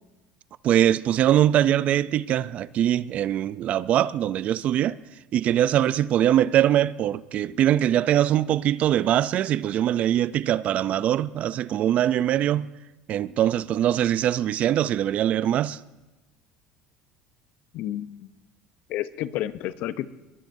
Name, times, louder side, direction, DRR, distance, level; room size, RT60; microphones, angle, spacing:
voice 1, 0.6-5.0 5.3-12.7 13.1-15.8, right 11 dB, 50° right, 0.4 m, -22 dB
voice 2, 17.7-18.3 18.9-20.1, left 13 dB, 65° left, 0.7 m, -30 dB
22.0 x 21.0 x 2.7 m
supercardioid pair, 115°, 3 cm